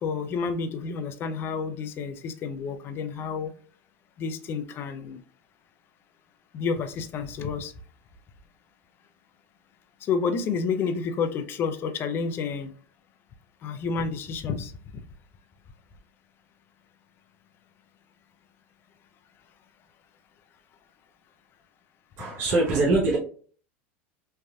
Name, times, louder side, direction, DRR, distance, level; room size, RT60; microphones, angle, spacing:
voice 1, 0.0-3.5 4.2-5.2 6.5-7.7 10.1-12.7 13.6-14.7, left 5 dB, 35° left, 9 dB, 0.4 m, -30 dB
voice 2, 22.2-23.2, right 2 dB, 40° right, -4 dB, 0.8 m, -23 dB
3.2 x 2.5 x 2.2 m, 0.44 s
supercardioid pair, 130°, 7 cm